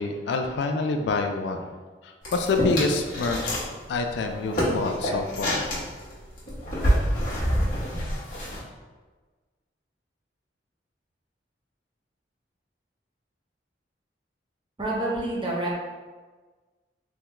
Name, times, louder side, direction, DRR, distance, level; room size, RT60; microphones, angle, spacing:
voice 1, 0.0-1.7 2.0-5.7, left 3 dB, 65° left, 5 dB, 0.3 m, -27 dB
sound 1, 2.2-3.7 4.0-8.6, equal, 50° left, 1.0 m, -27 dB
voice 2, 14.8-15.8, right 1 dB, 25° right, -5 dB, 0.6 m, -27 dB
3.5 x 2.2 x 2.9 m, 1.4 s
head